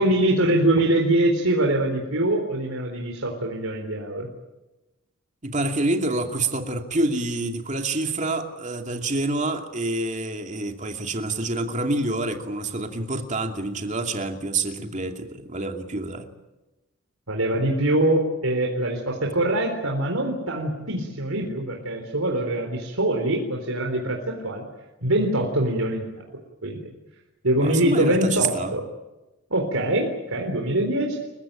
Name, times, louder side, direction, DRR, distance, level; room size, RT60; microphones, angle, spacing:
voice 1, 0.0-4.3 17.3-24.6 25.0-26.1 26.6-26.9 27.4-28.8 29.5-31.2, right 1 dB, 85° right, 1 dB, 3.9 m, -23 dB
voice 2, 5.4-16.3 27.5-28.7, right 2 dB, 35° right, 4 dB, 2.6 m, -27 dB
30.0 x 16.0 x 9.1 m, 1.1 s
head